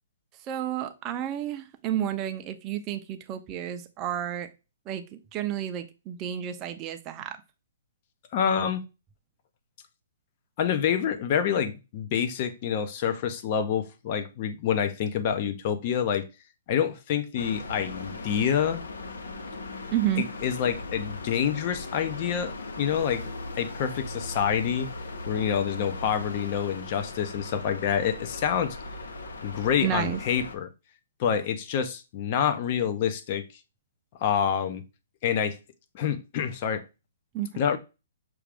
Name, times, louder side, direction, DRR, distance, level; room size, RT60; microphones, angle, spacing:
voice 1, 0.4-4.5 4.9-7.4 19.9-20.2 29.8-30.2 37.3-37.5, right 11 dB, 20° right, 0.5 m, -31 dB
voice 2, 8.3-8.8 10.6-16.3 16.7-18.8 20.2-23.3 23.6-24.9 25.3-28.8 29.4-30.7 31.2-33.4 34.2-34.8 35.2-35.6 35.9-36.8 37.6-37.8, left 8 dB, 35° left, 0.6 m, -27 dB
sound 1, 17.4-30.5, left 2 dB, 85° left, 0.9 m, -38 dB
6.0 x 2.4 x 3.4 m
hypercardioid pair, 160°, 0 cm